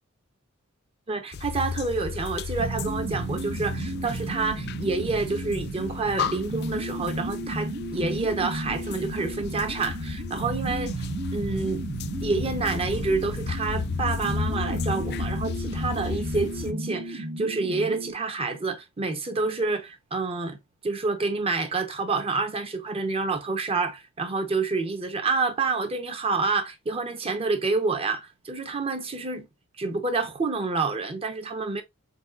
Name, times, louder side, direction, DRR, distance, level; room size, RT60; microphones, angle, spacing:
voice 1, 1.1-11.0 11.3-11.8 12.2-20.6 20.8-29.5 29.8-31.8, right 3 dB, 30° right, 0.8 m, -28 dB
sound 1, 1.3-16.7, left 6 dB, 50° left, 0.3 m, -34 dB
sound 2, 2.6-18.1, right 2 dB, 80° right, 1.1 m, -34 dB
4.1 x 3.9 x 2.3 m
head